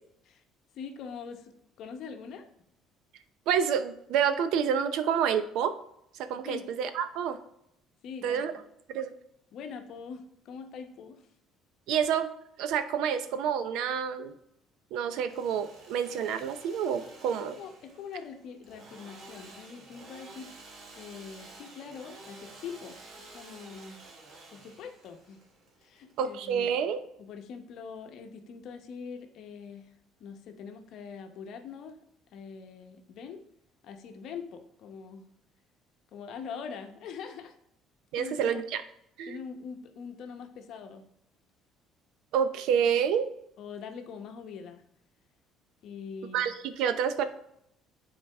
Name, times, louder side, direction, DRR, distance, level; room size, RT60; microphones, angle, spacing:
voice 1, 0.7-1.5 1.8-2.5 6.4-6.7 8.0-8.6 9.5-11.3 17.2-20.5 20.9-24.0 24.5-25.4 25.8-26.7 27.2-29.9 30.2-32.0 32.3-33.4 33.8-35.3 36.1-37.6 38.1-38.6 39.3-41.0 43.6-44.8 45.8-46.4, left 6 dB, 60° left, 6 dB, 0.8 m, -43 dB
voice 2, 3.5-5.7 6.3-7.4 8.2-8.5 8.9-9.1 11.9-14.3 14.9-17.6 26.2-27.0 38.1-38.8 39.2-39.4 42.3-43.3 46.3-47.2, right 8 dB, 75° right, 11 dB, 0.6 m, -28 dB
Engine / Sawing, 15.1-26.8, right 2 dB, 50° right, 1.5 m, -51 dB
9.5 x 4.0 x 3.4 m, 0.76 s
cardioid pair, 135°, 0 cm